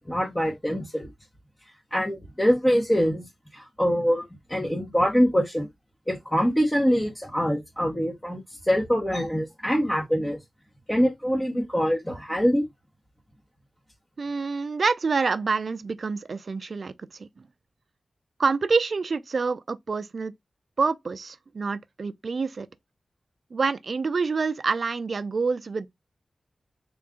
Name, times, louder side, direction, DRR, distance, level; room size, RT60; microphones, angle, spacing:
voice 1, 0.1-1.1 1.9-3.2 3.5-5.7 6.1-10.4 10.9-12.6, equal, 15° left, 0.9 m, -24 dB
voice 2, 14.2-16.9 17.2-17.3 18.4-20.3 20.8-22.7 23.5-25.9, right 4 dB, 60° right, 0.4 m, -27 dB
3.7 x 2.4 x 3.6 m
wide cardioid pair, 75°, 0 cm